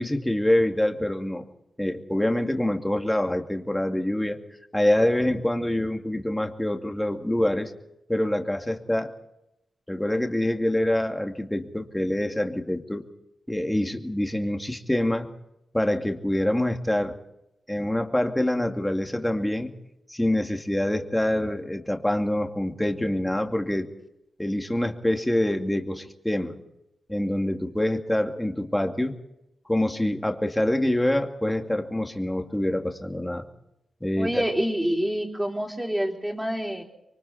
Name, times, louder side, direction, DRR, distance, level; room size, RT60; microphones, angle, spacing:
voice 1, 0.0-1.4 1.8-4.4 4.7-7.7 8.1-9.1 9.9-13.0 13.5-15.3 15.7-17.2 17.7-19.7 20.1-23.9 24.4-26.6 27.1-29.1 29.7-33.5 34.0-34.4, left 1 dB, 10° left, 4 dB, 2.4 m, -25 dB
voice 2, 34.2-36.8, equal, 5° right, 2 dB, 4.2 m, -27 dB
26.5 x 24.0 x 4.2 m, 0.87 s
cardioid pair, 85°, 0 cm